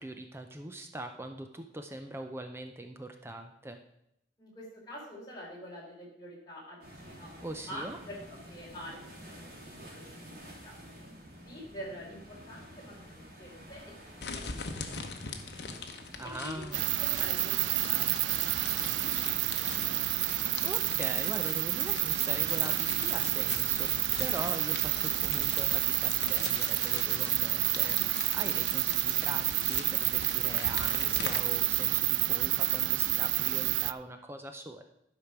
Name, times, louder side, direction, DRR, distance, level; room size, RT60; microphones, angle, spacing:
voice 1, 0.0-3.8 7.4-8.0 16.2-16.9 20.6-34.8, right 1 dB, 15° right, 6 dB, 0.6 m, -42 dB
voice 2, 4.4-7.3 7.7-10.8 11.4-14.4 14.8-14.9 15.6-15.8 16.2-20.5, equal, 20° left, -4 dB, 3.4 m, -47 dB
sound 1, 6.8-20.8, equal, 60° right, 3.2 m, -50 dB
sound 2, 14.2-31.4, left 5 dB, 65° left, 0.9 m, -42 dB
sound 3, 16.7-33.9, right 16 dB, 85° right, 0.3 m, -29 dB
11.5 x 5.1 x 5.9 m, 0.79 s
head